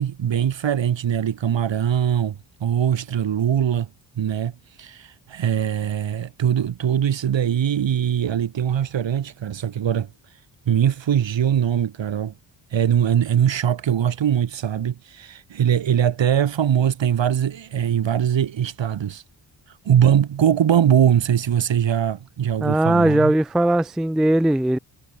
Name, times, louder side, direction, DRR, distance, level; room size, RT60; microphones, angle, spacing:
voice 1, 0.0-3.9 4.1-4.5 4.8-10.1 10.7-12.3 12.7-19.2 19.8-23.3, right 9 dB, 75° right, 4.9 m, -21 dB
voice 2, 22.6-24.8, right 1 dB, ahead, 0.3 m, -19 dB
wide cardioid pair, 135°, 45 cm